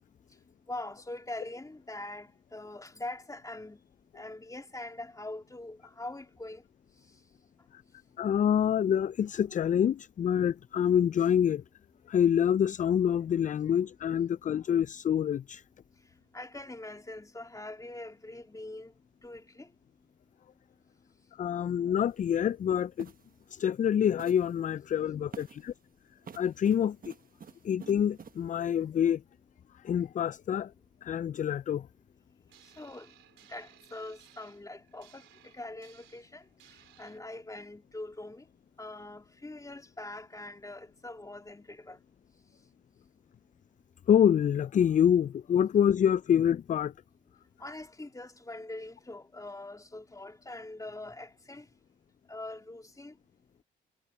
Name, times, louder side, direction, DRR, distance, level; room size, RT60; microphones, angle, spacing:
voice 1, 0.7-3.8 4.1-6.6 7.1-7.2 16.0-18.9 19.2-19.7 32.6-33.2 33.5-38.5 38.8-42.0 47.6-51.7 52.3-53.2, left 2 dB, 15° left, 2.7 m, -43 dB
voice 2, 8.2-11.6 12.1-15.6 21.3-23.1 23.5-25.7 26.3-27.1 27.6-29.2 29.8-30.7 31.0-31.9 44.1-46.9, left 9 dB, 40° left, 0.4 m, -26 dB
sound 1, 22.1-22.2 23.0-23.3 24.2-24.6 25.3-25.7 26.2-28.4, right 6 dB, 50° right, 1.4 m, -49 dB
sound 2, 32.5-37.2, right 14 dB, 85° right, 3.5 m, -60 dB
supercardioid pair, 60°, 19 cm